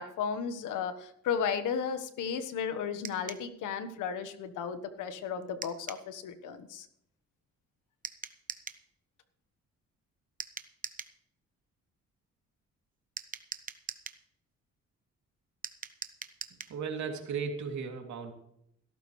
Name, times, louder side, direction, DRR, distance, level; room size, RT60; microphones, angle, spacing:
voice 1, 0.0-6.9, left 7 dB, 85° left, 10 dB, 1.3 m, -34 dB
sound 1, 3.0-3.5 5.6-6.1 8.0-8.8 10.4-11.2 13.2-14.2 15.6-16.8, right 5 dB, 25° right, 1.0 m, -42 dB
voice 2, 16.7-18.3, right 5 dB, 70° right, 3 dB, 2.9 m, -35 dB
16.5 x 13.5 x 3.2 m, 0.73 s
cardioid pair, 90°, 30 cm